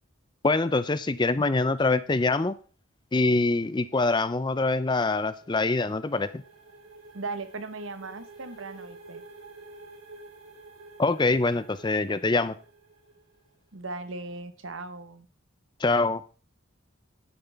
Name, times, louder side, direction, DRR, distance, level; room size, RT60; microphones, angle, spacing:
voice 1, 0.4-2.5 3.1-6.4 11.0-12.5 15.8-16.2, left 3 dB, 20° left, 15 dB, 0.4 m, -24 dB
sound 1, 5.2-13.6, right 3 dB, 90° right, 3.1 m, -50 dB
voice 2, 7.1-9.2 13.7-15.3, right 3 dB, 70° right, 11 dB, 1.1 m, -38 dB
10.5 x 9.5 x 3.5 m, 0.38 s
head